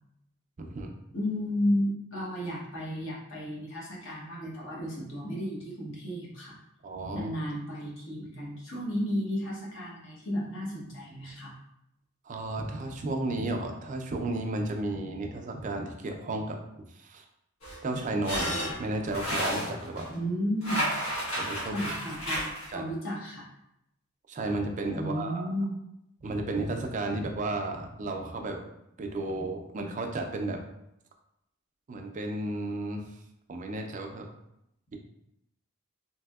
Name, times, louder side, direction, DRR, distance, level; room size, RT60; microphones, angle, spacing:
voice 1, 0.6-0.9 6.8-7.3 12.2-16.6 17.0-17.2 17.8-20.1 20.9-21.0 21.3-21.7 22.7-22.9 24.3-25.5 26.2-28.6 29.0-30.6 31.9-33.0 33.5-34.3, right 2 dB, 35° right, 3 dB, 0.3 m, -33 dB
voice 2, 1.1-6.6 7.1-11.5 20.1-20.9 21.7-23.5 24.9-25.8, equal, 60° left, -4 dB, 1.0 m, -33 dB
sound 1, 17.6-20.1 20.6-22.7, equal, 90° left, 1.1 m, -32 dB
3.4 x 2.7 x 2.3 m, 0.82 s
head